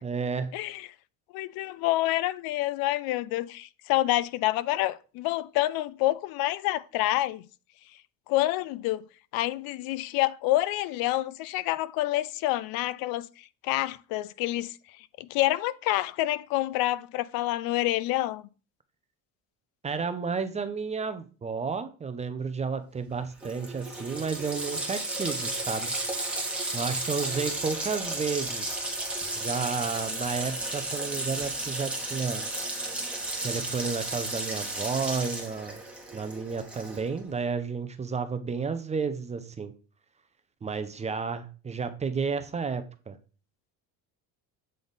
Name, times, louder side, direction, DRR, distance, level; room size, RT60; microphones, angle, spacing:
voice 1, 0.0-0.5 19.8-25.9 26.7-29.0 29.4-32.5 33.4-35.8 36.1-39.7 40.6-43.2, right 5 dB, 20° right, 0.5 m, -32 dB
voice 2, 1.3-7.4 8.3-9.1 9.3-13.3 13.6-14.7 15.2-18.4, left 16 dB, 75° left, 0.5 m, -27 dB
Water tap faucet, 23.1-23.2 23.4-37.2, right 2 dB, 5° right, 1.4 m, -33 dB
7.7 x 3.5 x 3.9 m
cardioid pair, 130°, 37 cm